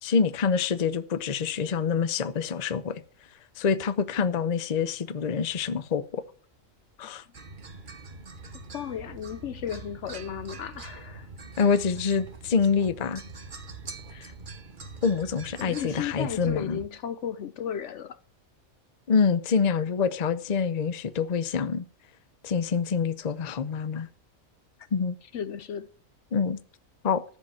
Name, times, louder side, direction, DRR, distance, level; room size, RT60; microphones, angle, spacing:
voice 1, 0.0-3.0 3.6-6.2 7.0-7.2 11.6-13.2 14.1-14.3 15.0-16.8 19.1-21.8 22.4-24.1 24.9-25.1 26.3-26.6 27.0-27.2, left 6 dB, 40° left, 0.7 m, -26 dB
sound 1, 7.3-16.9, right 3 dB, 40° right, 1.3 m, -43 dB
voice 2, 8.7-11.3 15.6-18.2 25.3-25.9, left 8 dB, 65° left, 0.9 m, -34 dB
14.0 x 5.3 x 7.0 m
omnidirectional pair, 1.4 m